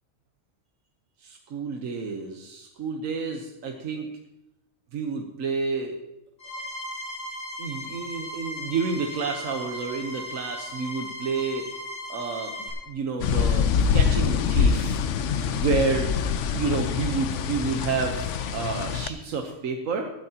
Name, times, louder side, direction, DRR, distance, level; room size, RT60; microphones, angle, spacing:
voice 1, 1.2-4.1 4.9-6.0 7.6-11.7 12.1-15.0 15.5-16.1 16.5-20.0, right 4 dB, 85° right, 3 dB, 1.4 m, -30 dB
sound 1, 6.4-12.7, left 1 dB, 55° left, 5.1 m, -37 dB
sound 2, 13.2-19.1, left 6 dB, 70° left, 1.0 m, -24 dB
18.5 x 12.5 x 2.9 m, 0.90 s
omnidirectional pair, 1.3 m